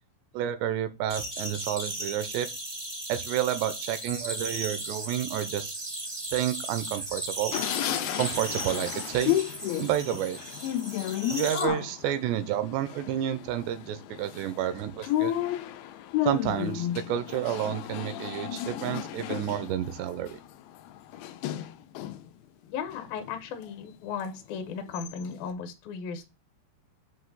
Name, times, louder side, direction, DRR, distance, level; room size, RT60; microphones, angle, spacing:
voice 1, 0.3-2.5 3.1-5.8 6.3-7.5 8.2-9.4 9.8-10.4 11.3-15.3 16.2-20.4, right 11 dB, 85° right, 2.8 m, -30 dB
sound 1, 1.1-11.7, right 1 dB, 30° right, 0.6 m, -36 dB
sound 2, 7.5-22.3 22.7-23.7 24.2-24.3 24.7-25.5, left 13 dB, 85° left, 2.1 m, -33 dB
voice 2, 22.7-26.3, left 6 dB, 70° left, 2.4 m, -36 dB
7.7 x 3.1 x 6.0 m
omnidirectional pair, 5.0 m